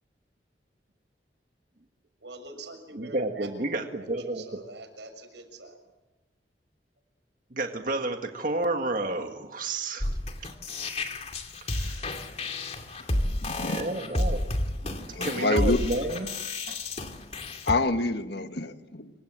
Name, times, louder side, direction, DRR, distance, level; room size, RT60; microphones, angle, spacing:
voice 1, 2.2-5.9, right 2 dB, 90° right, 7 dB, 6.7 m, -45 dB
voice 2, 2.9-4.6 7.5-10.1 11.6-12.1 13.6-14.5 14.8-16.4 16.6-16.8, right 2 dB, 50° right, 4 dB, 1.8 m, -31 dB
sound 1, 10.0-17.7, left 1 dB, 40° left, 2.6 m, -31 dB
voice 3, 13.4-13.8 15.1-15.8 17.7-19.1, left 2 dB, 70° left, 8 dB, 1.6 m, -27 dB
27.5 x 24.5 x 7.6 m, 1.0 s
head